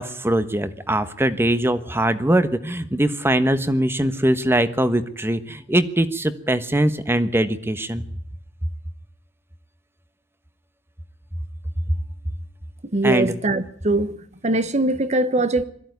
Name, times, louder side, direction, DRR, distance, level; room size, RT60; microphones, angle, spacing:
voice 1, 0.0-8.1 13.0-13.4, right 1 dB, 15° right, 1.3 m, -21 dB
voice 2, 12.9-14.2 14.4-15.6, right 2 dB, 40° right, 1.3 m, -21 dB
21.5 x 14.5 x 9.5 m
head